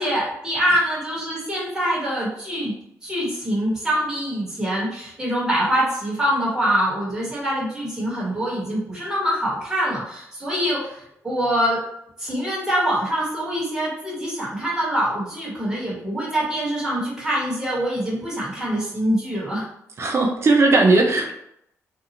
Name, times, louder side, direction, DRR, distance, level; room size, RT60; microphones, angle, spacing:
voice 1, 0.0-2.7 3.0-11.8 12.2-19.6, equal, 10° right, -7 dB, 1.4 m, -24 dB
voice 2, 20.0-21.3, right 2 dB, 50° right, 2 dB, 0.6 m, -17 dB
2.7 x 2.4 x 2.8 m, 0.76 s
cardioid pair, 90°, 6 cm